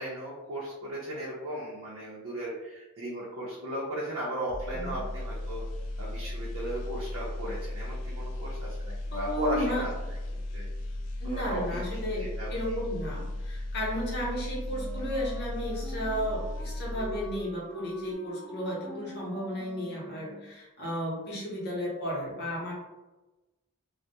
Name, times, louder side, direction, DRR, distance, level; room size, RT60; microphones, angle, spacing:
voice 1, 0.0-5.7 6.0-9.9 10.5-10.7 11.2-11.8 12.2-12.7, right 1 dB, 65° right, -6 dB, 0.6 m, -36 dB
sound 1, 4.5-17.6 17.9-18.1, left 1 dB, 75° left, 0.4 m, -36 dB
voice 2, 9.1-9.9 11.2-22.7, equal, 50° left, -5 dB, 0.8 m, -34 dB
Wind instrument woodwind instrument, 14.6-20.6, left 1 dB, ahead, 0.6 m, -45 dB
2.2 x 2.1 x 2.7 m, 1.1 s
head